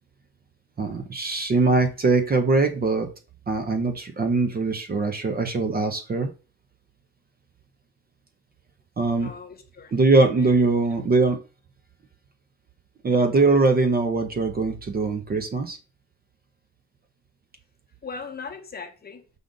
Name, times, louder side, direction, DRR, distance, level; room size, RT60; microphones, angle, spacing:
voice 1, 0.8-3.1 3.5-6.3 9.0-9.3 9.9-11.4 13.0-15.8, right 3 dB, 30° right, 0.6 m, -22 dB
voice 2, 9.2-9.9 10.4-10.7 18.0-19.2, left 5 dB, 30° left, 0.8 m, -39 dB
5.1 x 2.4 x 3.8 m
cardioid pair, 90°, 30 cm